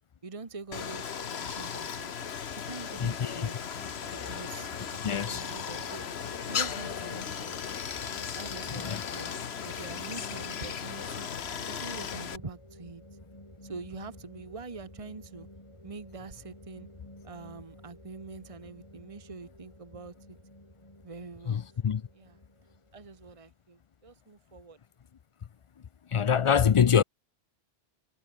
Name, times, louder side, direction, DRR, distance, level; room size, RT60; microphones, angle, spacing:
voice 1, 0.2-2.1 2.6-3.7 4.1-6.0 6.5-7.7 8.3-9.3 9.6-11.3 11.7-13.0 13.6-15.5 15.8-16.9 17.2-20.4 21.0-22.4 22.9-24.8, right 4 dB, 35° right, 1.4 m, -45 dB
Stream, 0.7-12.4, left 7 dB, 85° left, 1.3 m, -36 dB
voice 2, 3.0-3.4 5.0-5.4 8.8-9.0 21.5-22.0 26.1-27.0, left 7 dB, 50° left, 0.4 m, -24 dB
sound 1, 3.7-23.2, left 1 dB, 30° left, 5.7 m, -52 dB
omnidirectional pair, 1.0 m